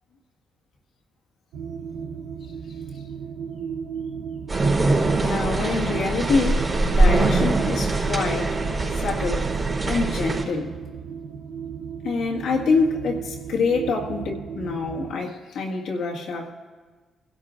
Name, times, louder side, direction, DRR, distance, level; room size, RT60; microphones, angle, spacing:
sound 1, 1.5-15.1, right 7 dB, 85° right, 0.7 m, -35 dB
sound 2, 4.5-10.4, right 2 dB, 35° right, 3.7 m, -22 dB
voice 1, 5.2-8.6 8.9-9.5 9.9-10.8 12.0-16.5, left 4 dB, 75° left, 1.8 m, -26 dB
23.0 x 12.0 x 2.5 m
supercardioid pair, 60°, 0 cm